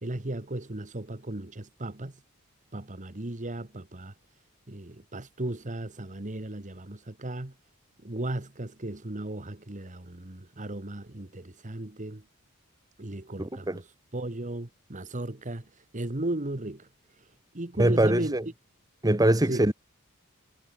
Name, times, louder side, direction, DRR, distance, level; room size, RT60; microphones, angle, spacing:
voice 1, 0.0-2.1 2.7-4.1 4.7-7.5 8.0-12.2 13.0-13.8 14.1-15.6 15.9-16.9 17.5-18.4 19.5-19.7, right 1 dB, 35° right, 1.6 m, -35 dB
voice 2, 13.4-13.8 17.8-18.4 19.0-19.7, right 1 dB, 15° right, 1.3 m, -23 dB
head